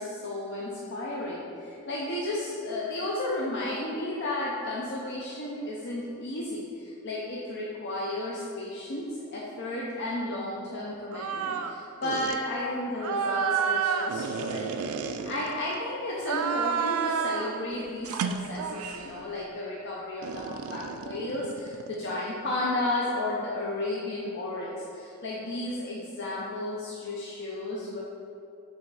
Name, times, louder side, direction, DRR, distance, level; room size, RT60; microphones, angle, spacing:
voice 1, 0.0-9.1 9.3-14.9 15.2-28.0, left 1 dB, 55° left, -5 dB, 0.6 m, -33 dB
sound 1, 11.1-11.7 12.0-12.4 13.0-15.8 16.2-17.6 18.0-19.1 20.2-22.0, right 6 dB, 75° right, 0.3 m, -30 dB
6.3 x 3.2 x 4.7 m, 2.6 s
head